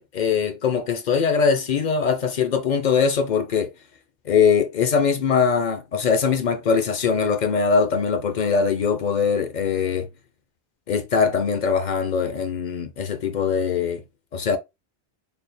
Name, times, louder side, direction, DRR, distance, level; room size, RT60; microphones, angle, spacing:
voice 1, 0.0-3.7 4.3-10.1 10.9-14.0 14.3-14.6, left 6 dB, 55° left, 0.6 m, -22 dB
3.4 x 2.1 x 4.2 m
omnidirectional pair, 1.1 m